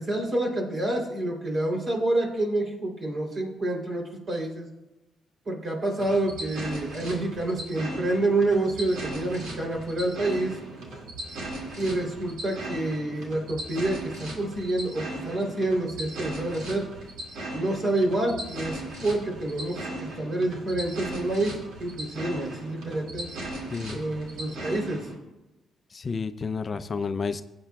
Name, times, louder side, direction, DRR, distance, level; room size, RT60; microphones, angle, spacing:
voice 1, 0.0-4.7 5.4-10.5 11.8-16.9 17.5-23.3 23.9-25.1, right 2 dB, 45° right, 0 dB, 3.2 m, -28 dB
sound 1, 6.0-25.1, right 1 dB, 80° right, 2.2 m, -38 dB
voice 2, 23.7-24.0 25.9-27.4, left 5 dB, 40° left, 11 dB, 0.4 m, -30 dB
16.0 x 8.6 x 2.3 m, 1.0 s
cardioid pair, 90°, 0 cm